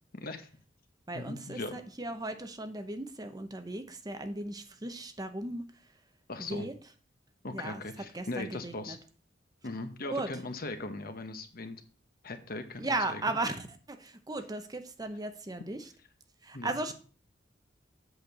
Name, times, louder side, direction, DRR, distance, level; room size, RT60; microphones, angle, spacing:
voice 1, 0.1-0.5 1.1-1.8 6.3-6.7 7.4-9.0 9.6-11.8 12.2-13.4 16.5-16.8, left 2 dB, 50° left, 8 dB, 1.1 m, -39 dB
voice 2, 1.1-5.6 6.4-6.7 7.5-7.8 8.1-9.0 10.1-10.3 12.8-15.9 16.4-16.9, right 2 dB, 20° right, 7 dB, 0.8 m, -36 dB
8.1 x 4.5 x 6.7 m, 0.39 s
head